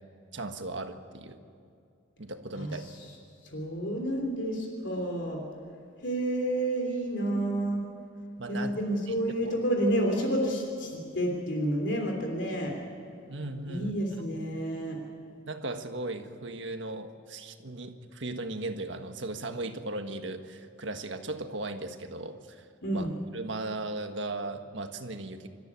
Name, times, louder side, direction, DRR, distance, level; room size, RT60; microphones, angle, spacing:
voice 1, 0.3-1.4 2.2-3.1 8.4-8.7 9.1-9.2 9.4-9.6 13.3-13.9 15.5-22.6 22.9-23.1 23.3-25.5, right 2 dB, 70° right, 6 dB, 1.6 m, -37 dB
voice 2, 3.5-5.4 6.0-7.8 8.5-12.7 13.7-15.0 22.8-23.1, right 1 dB, 65° left, 1 dB, 3.2 m, -29 dB
26.5 x 14.0 x 9.8 m, 2.4 s
head